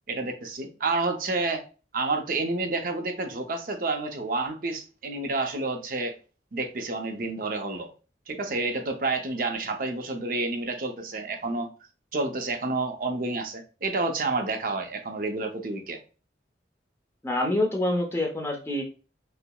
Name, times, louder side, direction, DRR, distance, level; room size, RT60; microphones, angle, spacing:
voice 1, 0.1-1.6 1.9-6.1 6.5-7.9 8.3-11.7 12.1-16.0, right 3 dB, 50° right, 0.6 m, -29 dB
voice 2, 17.2-18.8, left 1 dB, 15° left, 0.6 m, -26 dB
5.5 x 2.0 x 2.2 m
head